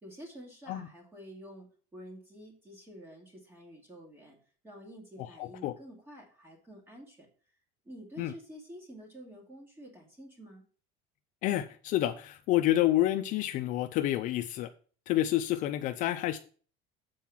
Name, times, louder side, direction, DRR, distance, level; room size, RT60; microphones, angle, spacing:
voice 1, 0.0-4.4 4.6-7.3 7.8-10.7, equal, 10° right, 2.3 m, -49 dB
voice 2, 5.2-5.7 8.2-8.3 11.4-14.7 15.1-16.4, left 14 dB, 45° left, 0.5 m, -29 dB
7.7 x 4.6 x 7.1 m
cardioid pair, 175°, 19 cm